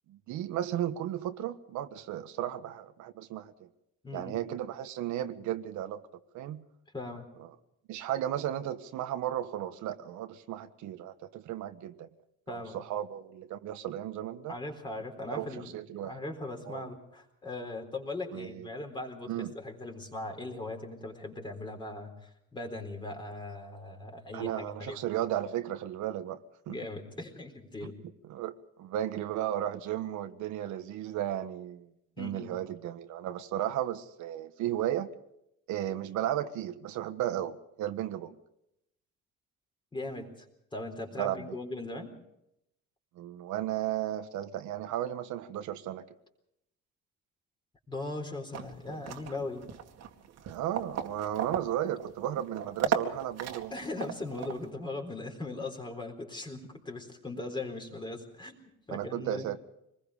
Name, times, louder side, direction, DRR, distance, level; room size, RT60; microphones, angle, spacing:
voice 1, 0.1-3.7 4.1-6.0 6.3-6.6 7.9-12.1 12.5-14.5 15.3-16.2 16.6-16.8 18.3-18.7 19.3-19.5 24.3-26.4 26.7-26.8 27.8-27.9 28.3-31.9 32.2-35.1 35.7-38.4 41.2-41.6 43.1-46.0 50.5-53.7 58.9-59.6, right 12 dB, 80° right, 8 dB, 1.5 m, -34 dB
voice 2, 4.0-4.5 6.9-7.3 12.5-12.8 14.5-15.7 16.0-25.0 26.7-28.0 32.2-32.5 39.9-40.5 40.7-42.1 47.9-49.6 53.7-59.6, left 2 dB, 15° left, 3 dB, 3.9 m, -39 dB
sound 1, 48.5-54.7, right 8 dB, 60° right, 2.2 m, -36 dB
25.5 x 20.5 x 5.0 m, 0.80 s
cardioid pair, 155°, 29 cm